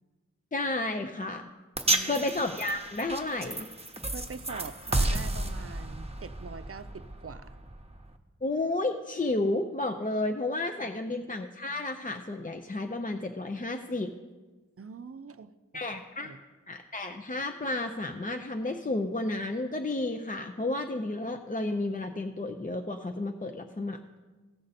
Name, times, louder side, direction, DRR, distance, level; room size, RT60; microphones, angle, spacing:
voice 1, 0.5-1.5 2.0-3.7 8.4-14.1 15.7-16.3 16.7-24.0, left 2 dB, 30° left, 5 dB, 0.5 m, -32 dB
sound 1, 1.8-8.1, right 2 dB, 20° right, 0.9 m, -32 dB
voice 2, 1.9-2.3 4.1-7.6 10.8-11.1 14.8-15.8 16.2-16.4, right 5 dB, 50° right, 12 dB, 0.5 m, -44 dB
16.0 x 6.5 x 4.1 m, 1.3 s
wide cardioid pair, 45°, 29 cm